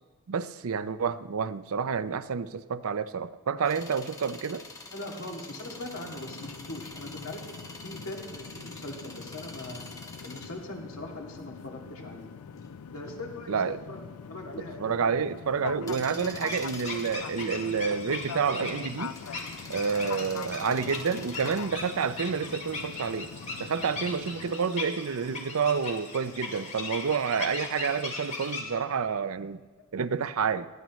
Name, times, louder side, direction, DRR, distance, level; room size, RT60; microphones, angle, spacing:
voice 1, 0.3-4.6 13.5-13.8 14.6-19.2 19.7-23.3 23.6-29.6 29.9-30.7, right 6 dB, 70° right, 14 dB, 0.5 m, -29 dB
sound 1, 3.7-21.7, left 2 dB, 15° left, 1.3 m, -47 dB
voice 2, 4.9-7.6 7.8-9.8 10.2-12.3 12.9-14.0 14.3-15.1 16.4-16.6, left 1 dB, 65° left, 0 dB, 2.3 m, -41 dB
sound 2, 5.7-24.6, left 6 dB, 80° left, 0.4 m, -43 dB
sound 3, 16.5-28.6, left 3 dB, 35° left, 2.1 m, -39 dB
19.0 x 14.0 x 3.1 m, 1.4 s
head